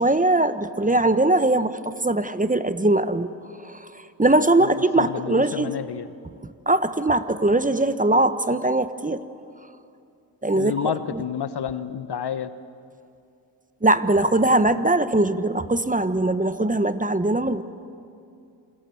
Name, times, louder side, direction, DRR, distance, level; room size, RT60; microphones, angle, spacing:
voice 1, 0.0-3.3 3.6-3.8 4.2-5.7 6.7-9.2 10.4-10.7 11.1-11.2 13.8-17.6, right 2 dB, 15° right, 12 dB, 1.3 m, -21 dB
voice 2, 4.6-6.2 10.5-12.5, left 8 dB, 50° left, 13 dB, 1.3 m, -30 dB
28.0 x 22.5 x 7.3 m, 2.5 s
hypercardioid pair, 40°, 49 cm